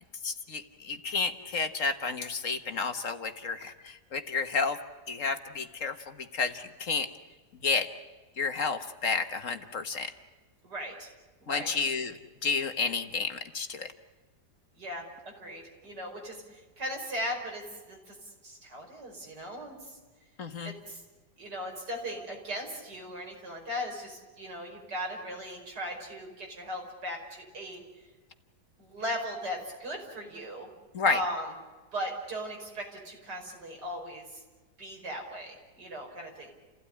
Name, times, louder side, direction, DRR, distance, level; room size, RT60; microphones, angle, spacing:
voice 1, 0.2-4.8 5.1-7.1 7.6-7.9 8.4-10.1 11.5-13.9 20.4-20.7 30.9-31.2, left 4 dB, 55° left, 8 dB, 1.7 m, -31 dB
voice 2, 10.6-11.1 11.4-11.7 14.8-15.0 15.4-18.1 18.4-19.8 20.6-21.0 21.4-27.8 28.8-30.7 31.1-31.5 31.9-34.3 34.8-36.5, equal, 85° right, 1 dB, 5.9 m, -38 dB
29.5 x 16.5 x 9.9 m, 1.3 s
omnidirectional pair, 1.7 m